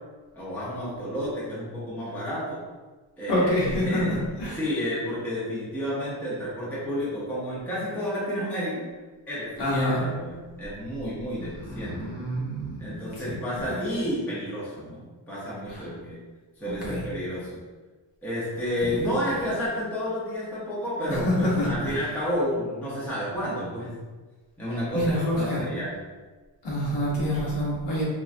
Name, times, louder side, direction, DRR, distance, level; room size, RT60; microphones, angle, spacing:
voice 1, 0.3-2.6 3.2-4.1 4.5-8.8 9.3-12.1 12.8-16.2 16.6-17.6 18.2-23.9 24.6-25.9, equal, 5° left, -8 dB, 0.5 m, -31 dB
voice 2, 3.3-4.0 4.4-4.6 9.6-10.0 11.6-13.9 15.7-15.8 16.7-17.1 18.8-19.1 21.1-21.9 24.9-25.6 26.6-28.0, left 1 dB, 55° left, -5 dB, 0.9 m, -27 dB
3.7 x 2.2 x 2.4 m, 1.3 s
wide cardioid pair, 180°, 48 cm